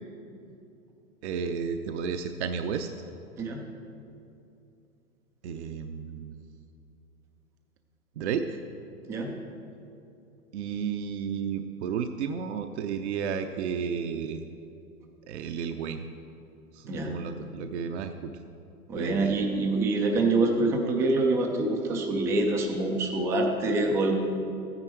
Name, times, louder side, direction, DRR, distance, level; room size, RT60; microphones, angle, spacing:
voice 1, 1.2-2.9 5.4-6.4 8.2-8.6 10.5-14.4 15.3-16.1 16.7-18.3 18.9-19.4, right 6 dB, 50° right, 7 dB, 0.7 m, -32 dB
voice 2, 18.9-24.1, right 2 dB, 5° right, 2 dB, 0.3 m, -25 dB
14.0 x 9.7 x 4.5 m, 2.7 s
hypercardioid pair, 115°, 43 cm